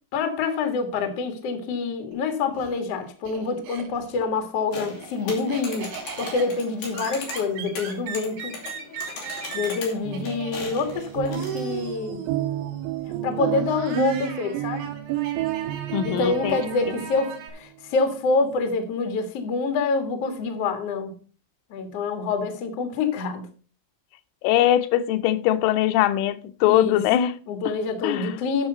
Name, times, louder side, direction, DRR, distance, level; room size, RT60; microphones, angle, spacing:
voice 1, 0.1-8.6 9.5-12.2 13.2-14.8 16.0-21.2 21.7-23.4 26.6-27.0 27.5-28.7, left 4 dB, 70° left, 1.4 m, -26 dB
Laughter, 2.1-4.2 4.6-17.5, right 7 dB, 60° right, 3.8 m, -38 dB
sound 1, 4.7-11.7, left 4 dB, 50° left, 4.0 m, -39 dB
sound 2, 9.9-17.5, right 14 dB, 80° right, 2.7 m, -31 dB
voice 2, 15.9-16.6 24.4-27.3 28.0-28.4, left 13 dB, 85° left, 3.3 m, -21 dB
9.7 x 6.4 x 5.6 m
omnidirectional pair, 5.6 m